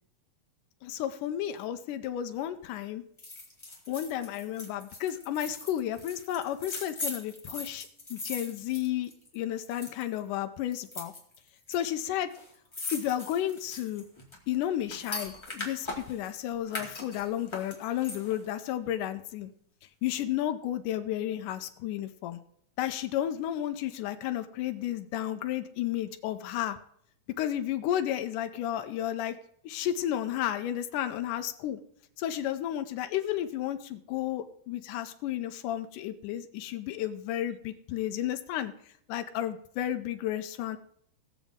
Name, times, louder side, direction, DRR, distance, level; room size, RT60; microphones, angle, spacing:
voice 1, 0.8-3.0 3.9-11.1 11.7-12.3 12.9-14.0 14.5-19.5 20.0-22.4 22.8-26.8 27.4-29.4 29.6-31.8 32.2-38.7 39.1-40.8, left 11 dB, 85° left, 8 dB, 1.8 m, -32 dB
sound 1, 3.2-9.4 9.6-10.2 10.7-11.8 12.0-12.1 12.3-16.3 16.7-18.5 18.8-18.9, left 2 dB, 20° left, 0.7 m, -40 dB
19.5 x 7.1 x 3.6 m, 0.66 s
omnidirectional pair, 4.5 m